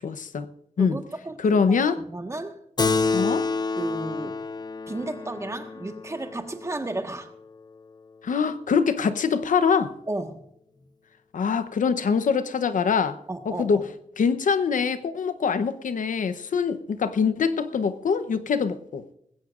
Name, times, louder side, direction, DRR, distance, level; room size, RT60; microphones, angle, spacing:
voice 1, 0.0-0.5 0.8-1.0 1.4-2.0 3.1-3.5 8.2-9.9 11.3-13.2 13.5-13.8 14.2-19.0, left 6 dB, 80° left, 12 dB, 0.9 m, -24 dB
voice 2, 0.8-2.6 3.8-4.4 4.9-7.3 10.1-10.4 10.8-10.9 13.3-13.8, right 2 dB, 20° right, 6 dB, 1.4 m, -33 dB
Keyboard (musical), 2.8-7.7, left 4 dB, 30° left, 0.6 m, -29 dB
20.5 x 16.0 x 2.5 m, 0.75 s
wide cardioid pair, 125°, 13 cm